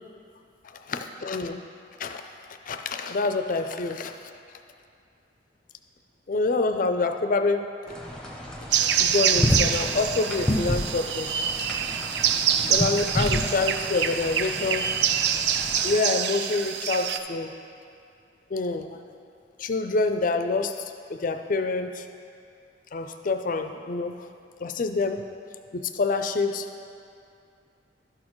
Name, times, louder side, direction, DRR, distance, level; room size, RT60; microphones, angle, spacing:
voice 1, 0.7-1.6 2.0-2.3 2.7-4.3 6.3-8.0 8.8-11.3 12.7-14.9 15.8-17.5 18.5-19.0 19.6-20.8 21.1-22.1 22.9-24.3 24.6-25.2 25.7-26.7, left 3 dB, 45° left, 7 dB, 0.4 m, -27 dB
sound 1, 7.9-16.0, equal, 5° left, 0.8 m, -30 dB
sound 2, 8.7-17.2, right 8 dB, 60° right, 0.4 m, -26 dB
12.0 x 6.4 x 3.1 m, 2.5 s
head